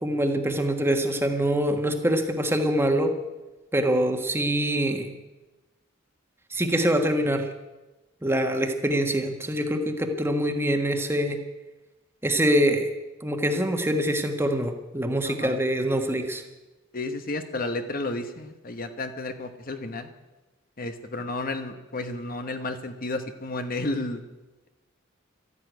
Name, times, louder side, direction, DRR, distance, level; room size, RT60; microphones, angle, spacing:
voice 1, 0.0-3.1 3.7-5.1 6.5-7.5 8.2-11.4 12.2-12.9 13.2-16.4, right 1 dB, 10° right, 5 dB, 1.5 m, -24 dB
voice 2, 15.2-15.6 16.9-20.1 20.8-24.2, left 2 dB, 45° left, 8 dB, 1.1 m, -32 dB
13.5 x 11.0 x 9.3 m, 1.1 s
head